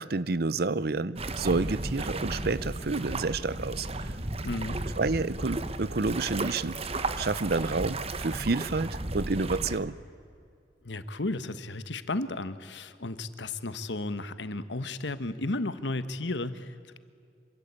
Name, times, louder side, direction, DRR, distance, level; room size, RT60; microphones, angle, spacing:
voice 1, 0.0-4.2 5.0-6.8 7.2-10.0, right 3 dB, 60° right, 18 dB, 0.7 m, -29 dB
sound 1, 1.2-9.8, right 2 dB, 35° right, 1.2 m, -34 dB
voice 2, 4.4-4.8 10.8-17.0, left 2 dB, 80° left, 12 dB, 1.4 m, -34 dB
26.5 x 25.5 x 8.4 m, 2.3 s
head